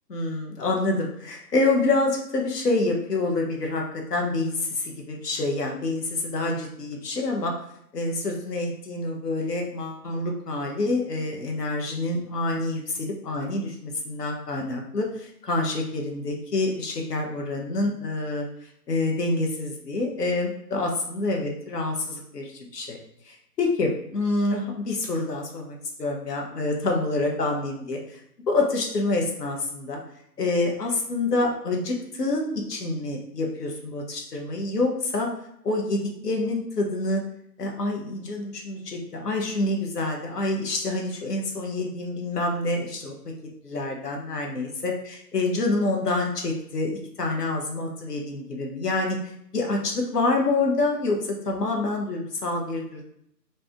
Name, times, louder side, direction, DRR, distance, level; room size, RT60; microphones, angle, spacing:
voice 1, 0.1-7.5 7.9-18.5 18.9-23.0 23.2-28.2 28.5-30.0 30.4-35.3 35.6-37.2 37.6-43.1 43.6-49.2 49.5-53.0, left 2 dB, 70° left, 1 dB, 0.9 m, -27 dB
3.2 x 2.7 x 3.5 m, 0.72 s
hypercardioid pair, 170°, 49 cm